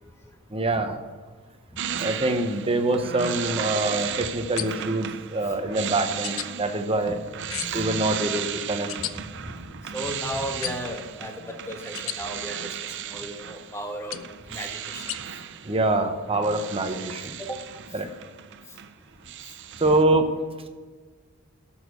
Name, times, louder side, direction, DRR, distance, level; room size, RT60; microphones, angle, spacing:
voice 1, 0.5-1.0 2.0-7.2 7.7-8.9 15.6-17.3 17.9-18.1 19.8-20.3, right 2 dB, 25° right, 6 dB, 1.0 m, -25 dB
sound 1, 1.8-18.9 19.2-20.0, right 9 dB, 60° right, 0.6 m, -35 dB
sound 2, 4.6-5.0 6.2-6.5 7.5-7.9 8.9-9.1 10.6-11.0 12.0-12.2 14.1-14.4 15.1-15.2, left 12 dB, 65° left, 0.5 m, -33 dB
voice 2, 7.5-7.9 9.2-14.2 14.5-15.1 17.4-17.6, equal, 15° left, 3 dB, 1.2 m, -35 dB
11.0 x 7.3 x 6.4 m, 1.4 s
head